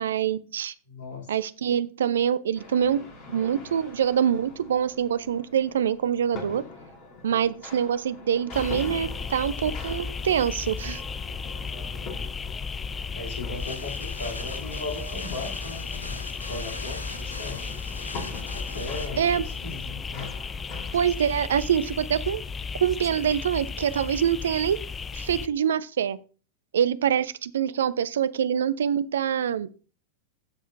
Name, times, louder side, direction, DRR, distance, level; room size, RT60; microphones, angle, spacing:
voice 1, 0.0-0.7 1.3-6.6 7.2-11.0 19.2-19.4 20.9-22.4 22.8-24.8 25.1-26.2 26.7-29.7, right 9 dB, 65° right, 17 dB, 0.4 m, -25 dB
voice 2, 0.9-1.3 13.1-17.6 18.5-20.3, left 2 dB, 60° left, 1 dB, 2.8 m, -37 dB
sound 1, 2.5-21.0, left 3 dB, 40° left, 2.9 m, -44 dB
sound 2, 8.5-25.5, left 5 dB, 20° left, 0.4 m, -34 dB
sound 3, 13.5-19.1, left 2 dB, 80° left, 0.8 m, -41 dB
15.0 x 5.0 x 2.6 m, 0.37 s
figure-of-eight pair, 90°, 0 cm